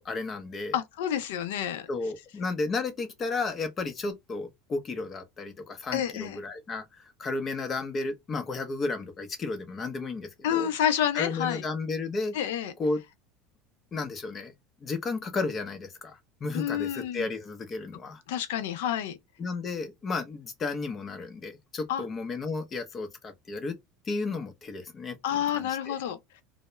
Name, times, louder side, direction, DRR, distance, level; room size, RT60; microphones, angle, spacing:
voice 1, 0.0-0.7 1.9-10.7 11.1-12.4 12.8-13.0 13.9-14.5 14.8-18.2 19.4-23.8 24.1-25.9, left 3 dB, 30° left, 0.7 m, -33 dB
voice 2, 0.7-1.9 5.9-6.4 10.4-11.6 12.3-12.7 16.5-17.3 18.3-19.2 21.9-22.0 25.2-26.2, left 10 dB, 85° left, 0.5 m, -29 dB
2.2 x 2.0 x 3.0 m
supercardioid pair, 120°, 0 cm